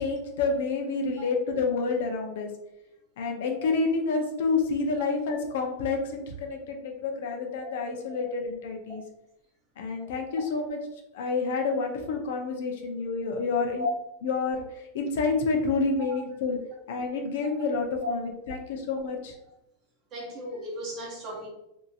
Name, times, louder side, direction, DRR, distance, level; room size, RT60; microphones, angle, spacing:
voice 1, 0.0-2.5 3.2-9.0 9.8-10.8 11.1-13.9 14.2-16.6 16.9-19.3, left 4 dB, 70° left, 3 dB, 0.6 m, -29 dB
voice 2, 20.1-21.5, left 1 dB, 30° right, -2 dB, 0.8 m, -37 dB
2.8 x 2.7 x 2.4 m, 0.84 s
supercardioid pair, 170°, 0 cm